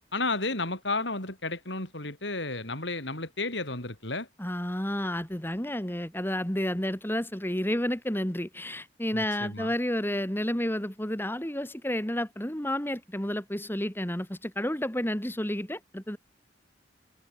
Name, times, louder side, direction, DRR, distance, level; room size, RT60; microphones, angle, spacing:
voice 1, 0.1-4.3 9.1-9.7, left 3 dB, 65° left, 7.4 m, -32 dB
voice 2, 4.4-16.2, left 1 dB, 10° left, 2.7 m, -31 dB
head